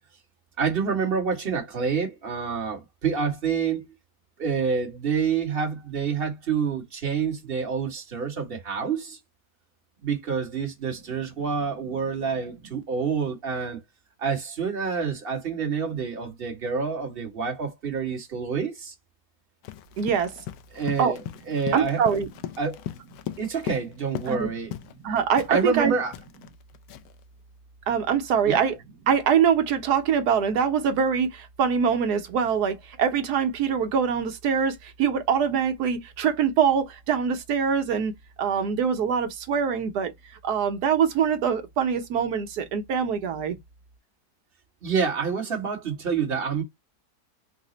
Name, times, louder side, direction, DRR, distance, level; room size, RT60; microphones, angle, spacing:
voice 1, 0.6-3.9 4.4-9.2 10.0-13.8 14.2-18.9 20.7-21.2 21.5-22.2 22.6-22.8 23.4-24.7 25.5-26.1 28.4-28.6 44.8-46.6, right 6 dB, 40° right, 1.3 m, -27 dB
Run, 19.6-24.4 24.7-25.0 25.4-27.2, left 12 dB, 75° left, 1.0 m, -38 dB
voice 2, 20.0-20.3 21.0-21.2 21.7-22.3 24.3-24.5 25.0-25.9 27.9-28.7 29.1-40.1 40.4-43.6, right 7 dB, 75° right, 1.3 m, -24 dB
4.1 x 2.1 x 3.8 m
omnidirectional pair, 1.7 m